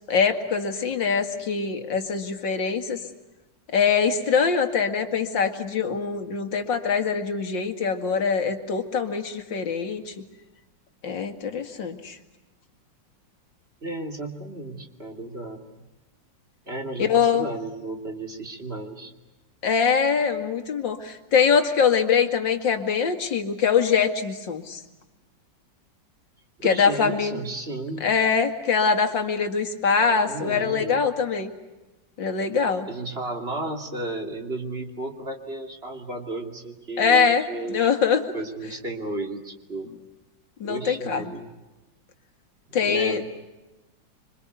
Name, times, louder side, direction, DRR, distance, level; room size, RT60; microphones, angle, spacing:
voice 1, 0.1-3.0 3.7-10.1 11.0-12.2 17.0-17.5 19.6-24.8 26.6-27.4 28.0-31.5 32.2-32.9 37.0-38.2 40.6-41.3 42.7-43.2, left 6 dB, 90° left, 7 dB, 2.8 m, -23 dB
voice 2, 13.8-15.6 16.7-19.1 26.6-28.0 30.2-31.0 32.9-37.9 38.3-39.9 40.6-41.5 42.7-43.4, right 2 dB, 35° right, 3 dB, 3.1 m, -33 dB
27.0 x 25.0 x 8.2 m, 1.1 s
omnidirectional pair, 2.0 m